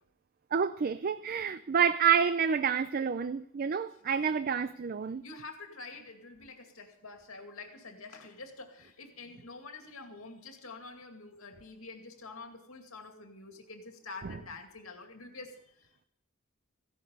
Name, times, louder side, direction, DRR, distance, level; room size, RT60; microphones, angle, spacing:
voice 1, 0.5-5.2, right 7 dB, 45° right, 0.4 m, -28 dB
voice 2, 3.9-4.3 5.2-16.1, left 3 dB, 85° left, 2.4 m, -47 dB
15.5 x 11.0 x 5.4 m
head